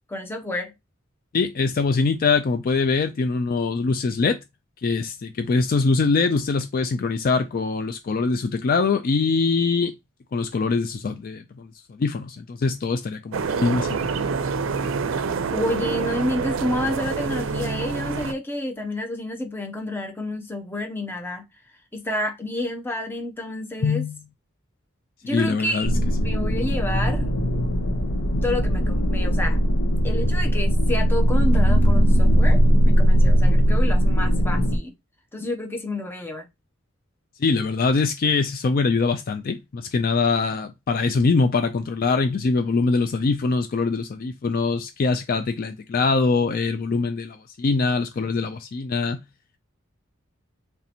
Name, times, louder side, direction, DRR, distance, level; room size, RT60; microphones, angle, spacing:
voice 1, 0.1-0.7 15.0-15.2 15.5-21.4 21.9-24.1 25.2-25.9 26.2-27.3 28.4-29.6 30.0-34.9 35.3-36.5, left 1 dB, 10° left, 0.6 m, -29 dB
voice 2, 1.3-4.4 4.8-9.9 10.3-14.3 14.6-14.7 23.8-24.1 25.3-25.9 26.2-26.4 37.4-49.2, left 4 dB, 45° left, 0.3 m, -23 dB
sound 1, 13.3-18.3, right 5 dB, 70° right, 0.5 m, -27 dB
sound 2, 25.8-34.8, equal, 75° left, 0.9 m, -19 dB
3.3 x 2.9 x 4.0 m
head